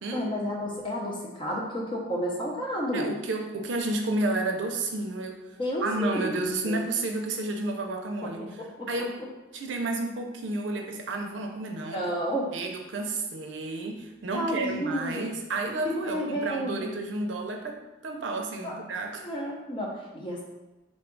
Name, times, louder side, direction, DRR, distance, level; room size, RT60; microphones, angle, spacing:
voice 1, 0.1-3.1 5.6-6.8 8.2-9.3 11.9-12.5 14.3-15.4 15.8-16.9 18.6-18.8 19.2-20.4, equal, 25° left, -2 dB, 0.6 m, -31 dB
voice 2, 2.9-5.4 5.8-8.4 8.9-9.2 9.5-12.0 12.5-17.8 18.0-19.2, right 2 dB, 80° right, 3 dB, 0.5 m, -31 dB
3.7 x 2.3 x 3.7 m, 1.1 s
head